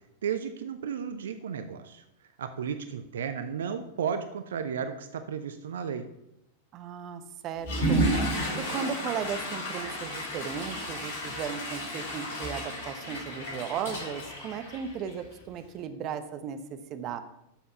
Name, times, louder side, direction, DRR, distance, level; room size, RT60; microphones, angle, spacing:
voice 1, 0.2-2.0 2.4-6.0, right 7 dB, 65° right, 9 dB, 0.7 m, -33 dB
voice 2, 6.7-8.0 8.6-17.2, right 7 dB, 35° right, 10 dB, 1.0 m, -36 dB
Water / Toilet flush, 7.6-15.3, right 1 dB, 50° left, 4.9 m, -32 dB
11.5 x 6.9 x 5.7 m, 0.84 s
figure-of-eight pair, 90°, 0 cm